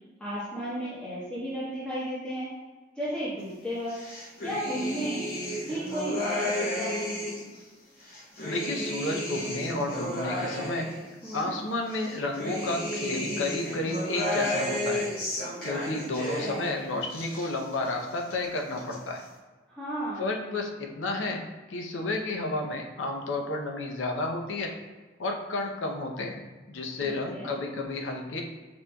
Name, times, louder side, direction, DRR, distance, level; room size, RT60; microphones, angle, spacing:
voice 1, 0.2-2.5 2.9-3.9 4.4-5.3 5.7-7.1 11.2-11.5 16.2-16.7 19.7-20.4 27.0-27.5, right 1 dB, 5° left, -11 dB, 0.8 m, -34 dB
sound 1, 3.9-7.5 8.0-11.4 11.9-16.7 17.0-17.9 18.2-18.9, left 1 dB, 50° left, 0.7 m, -33 dB
voice 2, 8.4-10.9 11.3-15.1 15.6-19.2 20.2-21.4 21.7-24.7 25.2-28.4, left 2 dB, 90° left, 2 dB, 0.6 m, -31 dB
5.8 x 2.6 x 2.2 m, 1.3 s
head